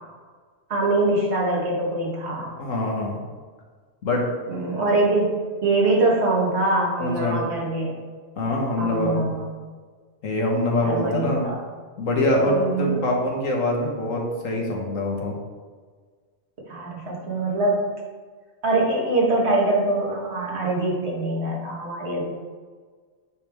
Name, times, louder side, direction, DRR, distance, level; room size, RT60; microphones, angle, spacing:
voice 1, 0.7-2.5 4.5-8.0 8.8-9.5 10.8-11.6 12.4-13.0 16.6-17.9 18.6-22.3, right 2 dB, 55° right, -3 dB, 1.7 m, -23 dB
voice 2, 2.4-3.2 4.0-4.3 7.0-7.4 8.4-9.2 10.2-11.5 12.0-15.3, left 1 dB, 90° left, -1 dB, 1.6 m, -24 dB
9.6 x 3.4 x 3.5 m, 1.5 s
omnidirectional pair, 1.3 m